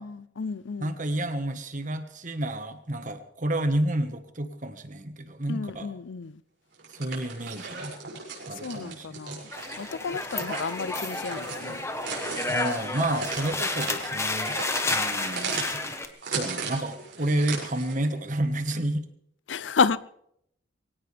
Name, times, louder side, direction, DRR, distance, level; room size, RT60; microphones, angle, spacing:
voice 1, 0.0-0.9 5.5-6.4 8.6-9.4 9.8-11.8 19.5-20.0, left 5 dB, 80° left, 0.6 m, -30 dB
voice 2, 0.8-5.9 6.9-7.9 8.5-9.4 12.5-14.6 14.8-15.8 16.3-19.0, right 1 dB, 45° right, 1.5 m, -30 dB
sound 1, 6.7-18.1, right 5 dB, 65° right, 6.4 m, -37 dB
sound 2, 9.5-16.1, left 2 dB, 15° left, 1.3 m, -31 dB
23.0 x 18.0 x 3.5 m
head